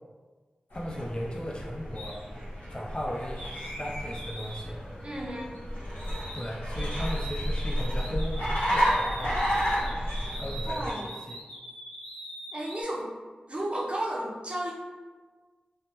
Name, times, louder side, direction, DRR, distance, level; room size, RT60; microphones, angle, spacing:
sound 1, 0.7-10.9, equal, 80° left, 1.2 m, -31 dB
voice 1, 0.7-2.2 2.7-3.4 3.8-4.8 6.3-9.9 10.3-11.4, equal, 30° left, -2 dB, 0.5 m, -37 dB
sound 2, 2.0-2.2 3.4-6.5 6.8-12.8, equal, 60° left, 0.8 m, -43 dB
voice 2, 5.0-5.5 10.7-11.1 12.5-13.2 13.5-14.7, right 1 dB, 40° right, -4 dB, 0.7 m, -33 dB
3.2 x 2.1 x 2.9 m, 1.4 s
cardioid pair, 45°, 3 cm